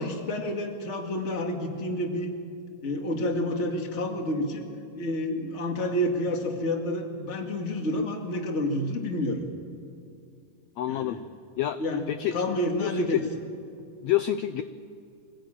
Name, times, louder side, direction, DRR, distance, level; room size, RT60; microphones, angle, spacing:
voice 1, 0.0-2.3 2.8-4.6 5.0-9.4 10.9-11.2 11.8-13.2, left 1 dB, 25° left, 3 dB, 1.8 m, -29 dB
voice 2, 10.8-11.2 11.6-11.8 12.1-12.3 12.8-13.2 14.0-14.6, left 13 dB, 85° left, 11 dB, 1.5 m, -27 dB
24.5 x 16.0 x 8.9 m, 2.5 s
omnidirectional pair, 3.8 m